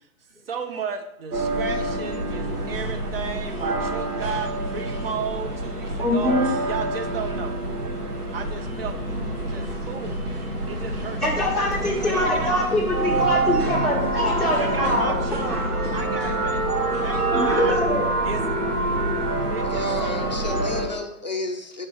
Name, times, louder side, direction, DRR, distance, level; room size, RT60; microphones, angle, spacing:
voice 1, 0.5-6.3 6.7-7.6 8.3-8.9 9.5-10.2 10.7-11.2 12.0-12.5 14.4-15.6 15.9-16.6 17.0-17.8 18.2-18.4 19.5-20.4, right 6 dB, 40° right, 6 dB, 0.6 m, -33 dB
sound 1, 1.3-20.9, right 2 dB, 85° right, 1.5 m, -26 dB
voice 2, 6.0-6.5 11.2-15.1 17.2-18.0, left 1 dB, ahead, -9 dB, 0.7 m, -23 dB
voice 3, 19.6-21.9, left 2 dB, 35° left, 4 dB, 0.4 m, -32 dB
5.2 x 3.3 x 5.6 m, 0.86 s
figure-of-eight pair, 130°, 45 cm